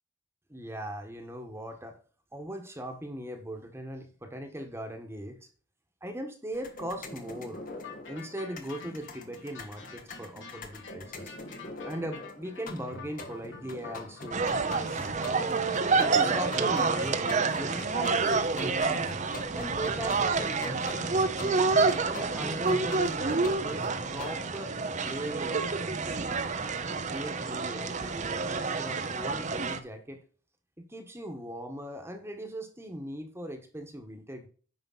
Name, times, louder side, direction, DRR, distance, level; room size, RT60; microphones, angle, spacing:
voice 1, 0.5-2.0 2.3-5.5 6.0-7.6 8.1-11.3 11.8-15.1 15.8-19.2 19.5-21.7 22.1-24.8 25.0-26.2 27.1-30.2 30.8-34.5, right 1 dB, 15° right, 5 dB, 1.4 m, -39 dB
sound 1, 6.5-24.3, left 2 dB, 45° left, 1.4 m, -43 dB
sound 2, 7.8-18.1, left 7 dB, 70° left, 3.3 m, -48 dB
sound 3, 14.3-29.8, right 4 dB, 40° right, 0.8 m, -28 dB
9.4 x 5.7 x 4.1 m, 0.40 s
head